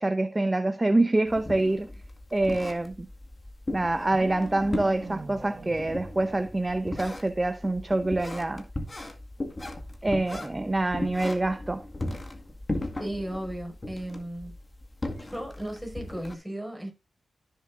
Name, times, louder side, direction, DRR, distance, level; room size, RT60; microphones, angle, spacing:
voice 1, 0.0-1.9 2.3-3.1 3.7-8.7 10.0-11.8, right 2 dB, 25° right, 0.8 m, -26 dB
sound 1, 1.3-16.4, left 1 dB, 30° left, 1.9 m, -37 dB
sound 2, 4.0-7.1, right 3 dB, 50° right, 1.4 m, -42 dB
voice 2, 13.0-14.6 15.3-16.9, right 1 dB, ahead, 5.4 m, -35 dB
14.0 x 6.7 x 2.5 m
cardioid pair, 60°, 0 cm